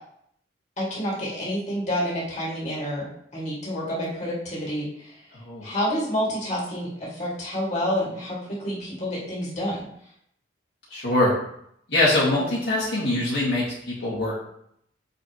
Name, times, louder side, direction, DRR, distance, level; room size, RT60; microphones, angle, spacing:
voice 1, 0.8-5.1 5.6-9.8, equal, 40° left, -6 dB, 2.5 m, -29 dB
voice 2, 5.3-5.6 10.9-11.3 11.9-14.4, left 1 dB, 60° left, -8 dB, 2.2 m, -23 dB
6.8 x 5.4 x 3.2 m, 0.71 s
head